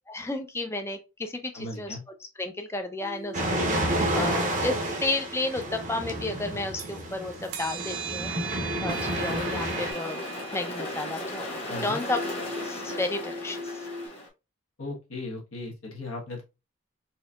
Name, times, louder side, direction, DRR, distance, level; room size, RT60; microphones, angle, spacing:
voice 1, 0.1-3.6 4.1-8.3 8.8-10.2 10.5-11.5 11.8-12.2 12.5-13.9, left 2 dB, 10° left, 5 dB, 0.4 m, -32 dB
voice 2, 1.5-2.0 11.7-12.0 14.8-16.4, left 2 dB, 75° left, 0 dB, 1.3 m, -37 dB
sound 1, 3.0-7.0 7.4-14.1, right 3 dB, 80° right, 0.6 m, -40 dB
sound 2, 3.3-9.9, right 1 dB, 35° right, 0.7 m, -30 dB
sound 3, 8.9-14.3, left 1 dB, 30° left, 1.2 m, -36 dB
4.3 x 2.7 x 2.3 m, 0.28 s
head